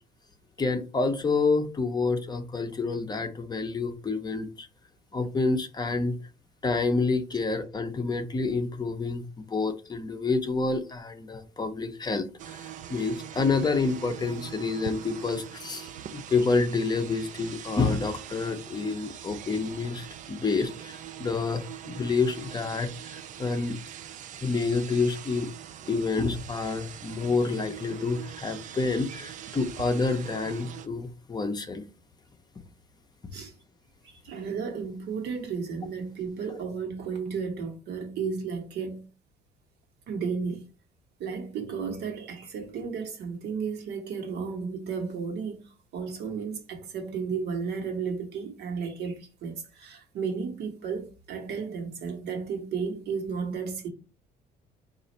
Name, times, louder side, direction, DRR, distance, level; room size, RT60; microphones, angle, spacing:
voice 1, 0.6-4.7 5.1-6.2 6.6-9.2 9.5-23.8 24.4-25.5 25.9-31.8, left 4 dB, 25° left, 0.6 m, -28 dB
sound 1, 12.4-30.9, right 10 dB, 50° right, 0.4 m, -43 dB
voice 2, 34.0-39.1 40.1-40.6 41.2-45.6 45.9-53.9, right 5 dB, 75° right, 1.2 m, -33 dB
4.0 x 2.5 x 4.1 m
cardioid pair, 110°, 17 cm